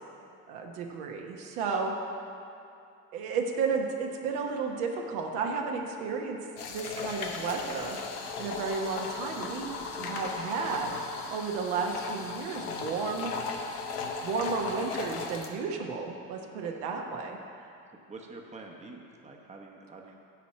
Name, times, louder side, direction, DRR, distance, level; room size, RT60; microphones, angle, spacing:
voice 1, 0.5-1.9 3.1-6.4 6.7-8.0 8.4-13.3 14.2-17.7, right 5 dB, 60° right, 2 dB, 1.2 m, -33 dB
sound 1, 6.6-15.5, left 4 dB, 75° left, 1.0 m, -37 dB
voice 2, 18.1-20.2, right 3 dB, 15° right, 1 dB, 1.0 m, -47 dB
10.5 x 4.1 x 7.5 m, 2.5 s
figure-of-eight pair, 65°, 46 cm